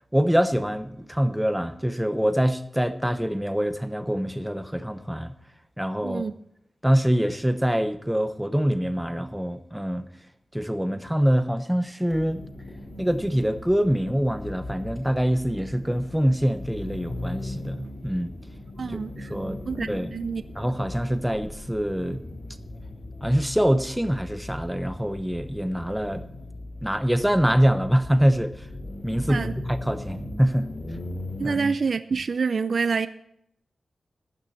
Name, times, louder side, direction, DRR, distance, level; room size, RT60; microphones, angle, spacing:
voice 1, 0.1-5.3 5.8-6.3 6.8-10.0 10.5-12.4 13.0-18.3 19.3-19.6 19.9-20.1 20.5-22.2 23.2-26.2 26.8-28.7 29.0-30.7 31.4-31.6, equal, 5° right, 0.9 m, -24 dB
sound 1, 12.1-31.7, left 1 dB, 40° left, 3.9 m, -38 dB
voice 2, 18.8-19.3 19.7-20.4 29.3-29.5 31.4-33.1, right 5 dB, 55° right, 0.5 m, -27 dB
15.5 x 11.5 x 4.3 m
wide cardioid pair, 140°, 0 cm